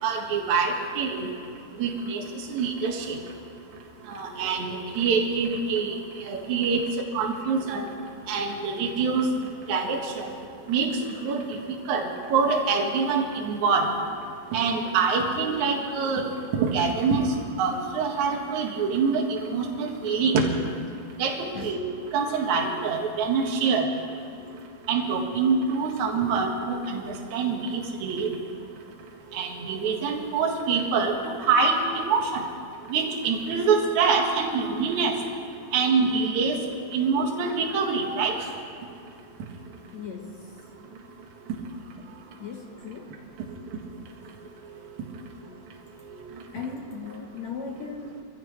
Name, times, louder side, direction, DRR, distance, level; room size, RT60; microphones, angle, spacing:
voice 1, 0.0-1.3 1.8-2.2 2.5-3.2 4.1-5.9 6.3-7.8 8.3-9.2 9.7-10.3 10.7-10.9 11.2-11.6 11.9-13.9 14.5-17.3 17.6-20.4 21.2-21.4 21.6-21.8 22.1-23.9 24.9-27.0 27.3-28.3 29.3-32.4 32.9-35.1 35.7-36.6 36.9-38.4, right 5 dB, 55° right, 1 dB, 2.8 m, -25 dB
voice 2, 39.9-40.6 42.4-43.2 46.5-48.2, left 5 dB, 65° left, 1 dB, 1.9 m, -37 dB
25.0 x 15.0 x 3.3 m, 2.3 s
omnidirectional pair, 4.3 m